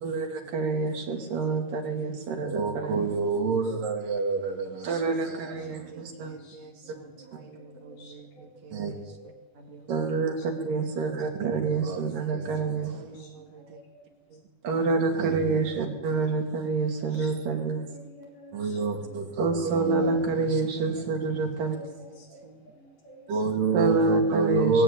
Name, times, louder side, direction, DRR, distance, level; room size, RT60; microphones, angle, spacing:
voice 1, 0.0-6.3 8.7-8.9 9.9-13.0 14.6-17.8 18.5-21.9 23.3-24.8, right 4 dB, 80° right, 3 dB, 4.4 m, -27 dB
voice 2, 4.9-9.9 12.1-13.8 14.3-14.4 20.4-20.7 21.4-22.6, right 4 dB, 55° right, 4 dB, 3.0 m, -50 dB
voice 3, 5.6-6.9 7.2-7.3 7.7-9.4 10.3-10.5 10.9-11.2 11.9-12.1 13.0-13.3 13.7-14.1 15.7-15.9 17.1-17.5 17.8-19.3 21.6-23.4, equal, 75° left, -1 dB, 6.0 m, -51 dB
20.5 x 15.0 x 8.9 m, 1.1 s
omnidirectional pair, 3.8 m